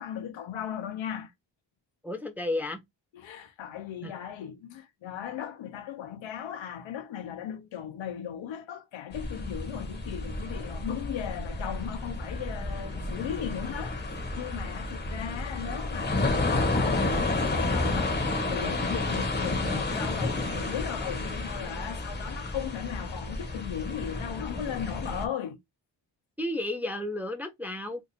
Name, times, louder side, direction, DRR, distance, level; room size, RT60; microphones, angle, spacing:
voice 1, 0.0-1.3 3.1-14.0 14.4-18.2 18.5-25.6, left 9 dB, 85° left, 0.9 m, -37 dB
voice 2, 2.0-2.8 4.0-4.1 26.4-28.0, left 1 dB, 5° right, 0.3 m, -32 dB
sound 1, 9.1-25.3, left 2 dB, 25° left, 0.8 m, -31 dB
2.8 x 2.5 x 4.0 m
wide cardioid pair, 140°, 45 cm